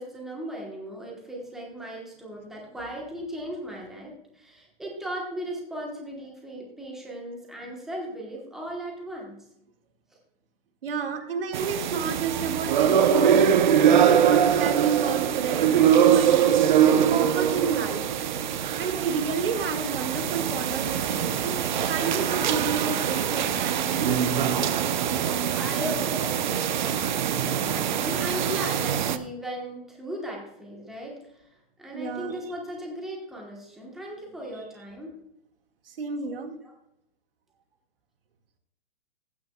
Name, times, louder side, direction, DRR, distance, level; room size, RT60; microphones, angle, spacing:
voice 1, 0.0-9.4 11.4-11.5 17.4-17.5 25.5-35.2 36.2-36.4, equal, ahead, -2 dB, 1.1 m, -37 dB
voice 2, 10.8-13.6 13.9-18.0 18.8-21.6 21.9-24.2 31.9-32.4 34.6-34.7 35.9-36.6, right 5 dB, 70° right, 5 dB, 1.9 m, -31 dB
sound 1, 11.5-29.2, right 8 dB, 50° right, 0.8 m, -23 dB
15.0 x 9.5 x 2.3 m, 0.82 s
hypercardioid pair, 175°, 29 cm